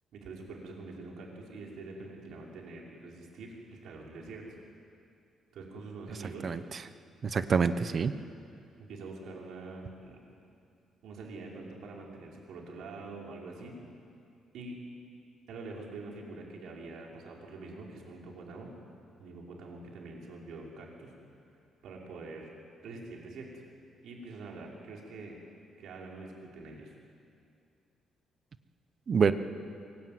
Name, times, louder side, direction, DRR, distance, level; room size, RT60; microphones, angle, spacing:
voice 1, 0.1-4.6 5.5-6.6 8.8-10.2 11.0-13.8 14.5-14.8 15.5-18.7 19.2-21.1 21.8-22.5 22.8-23.6 24.0-25.4 25.8-26.9, right 3 dB, 65° right, -1 dB, 5.4 m, -45 dB
voice 2, 7.2-8.1 29.1-29.3, right 6 dB, 35° right, 11 dB, 0.9 m, -26 dB
24.5 x 22.0 x 9.5 m, 2.4 s
cardioid pair, 170°, 0 cm